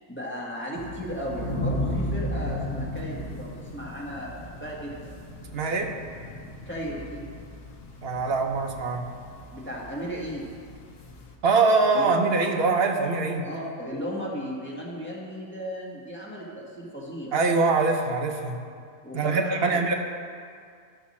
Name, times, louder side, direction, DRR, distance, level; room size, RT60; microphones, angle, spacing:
voice 1, 0.1-5.1 6.6-7.2 9.5-10.5 11.9-12.1 13.4-17.3 19.0-19.8, equal, 10° left, -5 dB, 1.5 m, -35 dB
sound 1, 0.7-11.3, left 1 dB, 55° left, 1.0 m, -35 dB
voice 2, 5.5-5.9 8.0-9.1 11.4-13.5 17.3-18.6 19.1-19.9, right 4 dB, 60° right, 3 dB, 1.0 m, -23 dB
12.5 x 5.9 x 4.2 m, 2.2 s
omnidirectional pair, 1.3 m